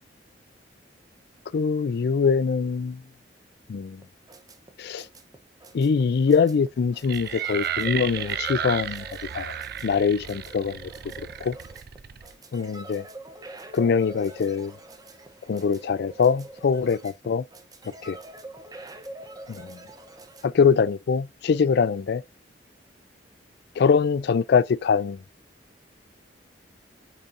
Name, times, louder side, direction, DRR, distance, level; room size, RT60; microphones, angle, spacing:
voice 1, 1.5-3.0 3.7-4.0 4.8-5.0 5.7-9.0 9.3-9.5 9.8-10.9 11.4-11.5 12.5-13.0 13.7-14.7 15.5-17.4 18.0-18.2 19.5-19.8 20.4-22.2 23.8-25.2, left 5 dB, 60° left, 0.4 m, -23 dB
sound 1, 4.0-20.5, right 2 dB, 20° right, 0.7 m, -44 dB
sound 2, 7.0-12.3, right 9 dB, 60° right, 0.5 m, -33 dB
8.8 x 4.3 x 2.5 m
head